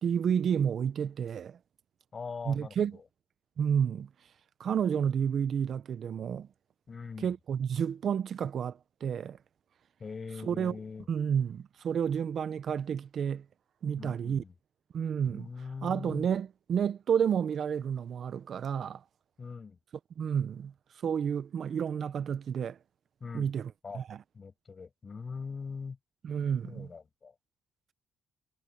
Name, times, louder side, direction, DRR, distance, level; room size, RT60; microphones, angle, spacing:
voice 1, 0.0-1.6 2.5-3.0 3.6-4.1 4.6-6.5 7.2-9.4 10.4-10.8 11.1-13.4 13.8-14.4 14.9-15.5 15.8-19.0 20.2-22.8 23.3-24.2 26.2-26.9, right 8 dB, 60° right, 0.7 m, -30 dB
voice 2, 2.1-3.0 6.9-7.3 10.0-11.1 14.0-14.5 15.2-16.3 19.4-19.8 23.2-23.5 23.8-24.0 24.3-26.0 26.6-27.3, left 5 dB, 35° left, 6.2 m, -42 dB
cardioid pair, 90°, 0 cm